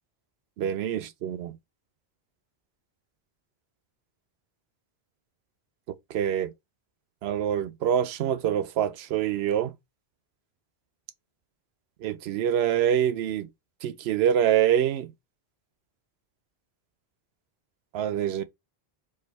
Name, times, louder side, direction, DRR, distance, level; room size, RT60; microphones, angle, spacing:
voice 1, 0.6-1.6 6.1-6.5 7.2-9.7 12.0-13.5 13.8-15.1 17.9-18.4, right 10 dB, 85° right, 0.8 m, -25 dB
4.7 x 2.5 x 4.4 m
omnidirectional pair, 1.0 m